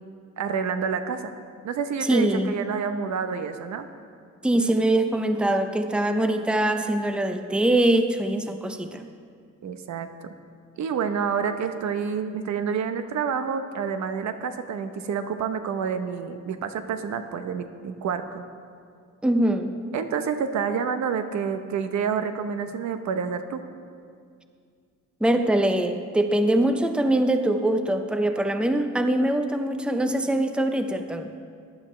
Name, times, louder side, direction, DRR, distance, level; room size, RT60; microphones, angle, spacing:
voice 1, 0.4-1.3 1.6-3.9 9.6-10.3 10.8-18.4 19.9-23.6, right 6 dB, 65° right, 8 dB, 0.9 m, -28 dB
voice 2, 2.0-2.5 4.4-9.0 19.2-19.7 25.2-31.3, right 1 dB, 5° right, 7 dB, 0.7 m, -23 dB
15.0 x 11.5 x 3.3 m, 2.2 s
cardioid pair, 90°, 30 cm